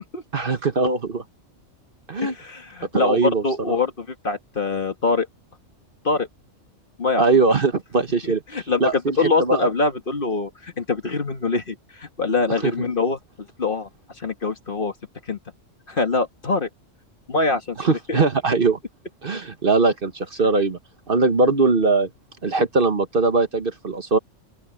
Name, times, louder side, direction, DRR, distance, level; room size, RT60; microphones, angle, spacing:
voice 1, 0.3-1.2 2.1-2.3 2.9-3.7 7.2-8.4 8.8-9.7 12.6-12.7 17.8-18.8 19.2-20.8 21.1-22.1 22.4-24.2, right 3 dB, 45° right, 1.4 m, -21 dB
voice 2, 2.2-5.3 6.0-6.3 7.0-7.2 8.2-13.2 13.6-13.9 14.2-14.9 15.3-15.4 15.9-16.7 17.3-17.8 18.1-18.2, left 3 dB, 45° left, 1.9 m, -24 dB
open air
omnidirectional pair, 1.3 m